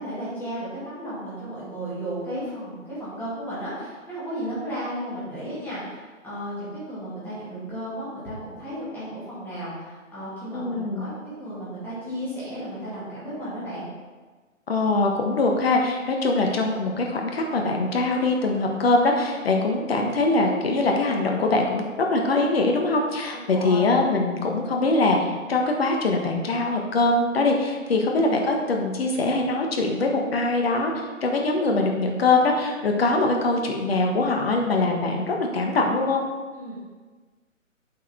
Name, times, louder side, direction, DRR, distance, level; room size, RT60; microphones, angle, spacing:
voice 1, 0.0-13.8 23.3-23.9 27.9-28.1 36.6-36.8, equal, 5° left, -11 dB, 2.4 m, -34 dB
voice 2, 10.5-11.0 14.7-21.8 22.1-25.2 25.5-30.9 31.2-36.2, left 2 dB, 50° left, 2 dB, 1.4 m, -22 dB
8.1 x 4.9 x 4.3 m, 1.4 s
figure-of-eight pair, 140°, 39 cm